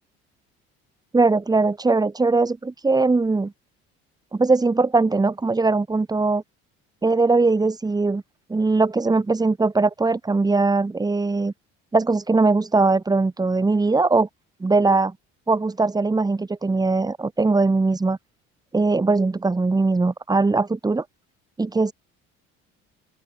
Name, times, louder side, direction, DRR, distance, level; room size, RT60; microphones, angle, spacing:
voice 1, 1.1-3.5 4.3-6.4 7.0-8.2 8.5-11.5 11.9-14.3 14.6-15.1 15.5-18.2 18.7-21.0 21.6-21.9, right 3 dB, 15° right, 0.9 m, -20 dB
open air
supercardioid pair, 75°, 29 cm